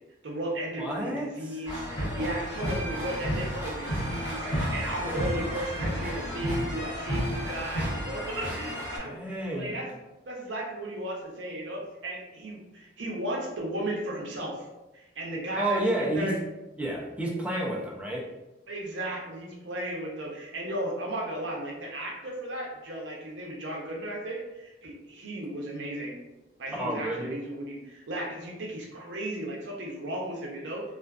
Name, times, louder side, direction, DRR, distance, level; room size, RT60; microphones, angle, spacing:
voice 1, 0.2-10.0 10.2-14.7 14.9-16.4 18.7-26.2 26.6-30.8, right 1 dB, 70° right, -2 dB, 0.6 m, -35 dB
voice 2, 0.8-1.7 9.0-9.8 15.6-16.3 16.8-18.2 26.8-27.4, right 1 dB, 5° right, -4 dB, 0.5 m, -30 dB
sound 1, 1.7-9.0, equal, 80° left, 1.0 m, -32 dB
2.4 x 2.4 x 2.3 m, 1.0 s
head